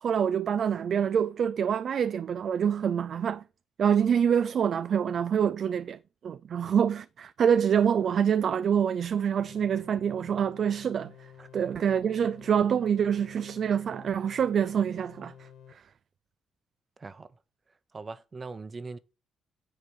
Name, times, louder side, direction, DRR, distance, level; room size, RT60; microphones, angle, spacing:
voice 1, 0.0-3.4 3.8-11.1 11.5-15.5, right 8 dB, 55° right, 0.3 m, -26 dB
sound 1, 9.4-15.7, left 8 dB, 80° left, 1.1 m, -51 dB
voice 2, 17.9-19.0, right 4 dB, 35° right, 0.9 m, -41 dB
9.8 x 4.3 x 6.3 m
cardioid pair, 90°, 0 cm